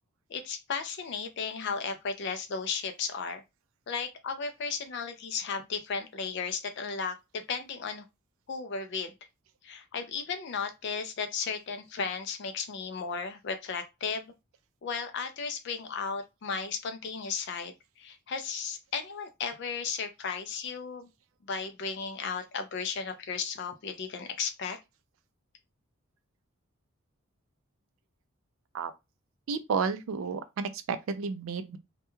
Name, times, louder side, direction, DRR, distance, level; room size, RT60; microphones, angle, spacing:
voice 1, 0.3-3.4 3.9-8.0 8.5-9.1 9.6-14.3 14.8-21.1 21.5-24.8, left 5 dB, 55° left, 0.3 m, -35 dB
voice 2, 29.5-31.8, right 5 dB, 70° right, 0.3 m, -31 dB
2.2 x 2.2 x 3.0 m
head